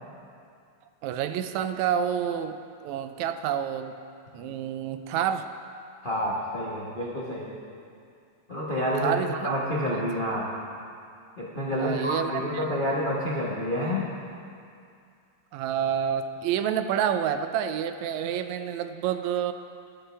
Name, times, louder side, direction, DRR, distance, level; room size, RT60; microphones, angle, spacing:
voice 1, 1.0-4.0 4.3-5.5 9.0-9.5 11.7-12.6 15.5-19.5, right 9 dB, 80° right, 9 dB, 1.8 m, -28 dB
voice 2, 6.0-7.6 8.5-9.2 9.4-10.5 11.4-14.1, equal, 70° left, -5 dB, 0.4 m, -28 dB
23.0 x 8.1 x 3.4 m, 2.4 s
omnidirectional pair, 3.3 m